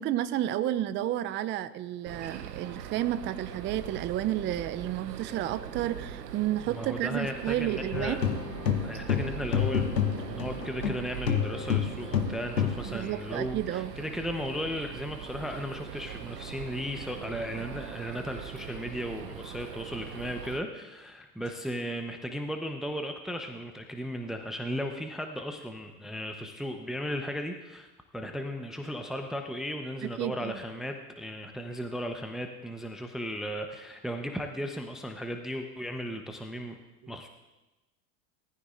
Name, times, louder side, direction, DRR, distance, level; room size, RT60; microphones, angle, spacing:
voice 1, 0.0-8.2 12.9-13.9 30.0-30.6 37.0-37.1, right 12 dB, 25° right, 13 dB, 0.5 m, -31 dB
sound 1, 2.0-20.6, right 8 dB, 85° right, 0.9 m, -41 dB
voice 2, 6.7-8.2 8.8-27.9 28.1-36.8 37.1-37.3, equal, ahead, 5 dB, 0.9 m, -36 dB
sound 2, 7.9-11.0 11.3-12.9, left 8 dB, 90° left, 1.0 m, -28 dB
19.5 x 14.5 x 2.6 m, 1.1 s
hypercardioid pair, 85°, 48 cm